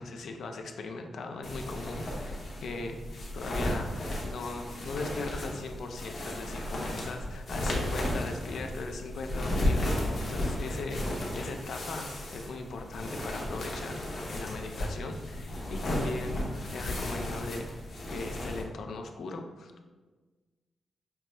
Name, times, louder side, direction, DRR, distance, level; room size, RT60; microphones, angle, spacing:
voice 1, 0.0-11.1 11.3-16.5 16.7-17.7 18.1-19.9, left 3 dB, 70° left, 5 dB, 0.4 m, -39 dB
sound 1, 1.4-18.6, left 1 dB, 55° left, 0.9 m, -34 dB
5.7 x 2.0 x 3.2 m, 1.3 s
cardioid pair, 105°, 0 cm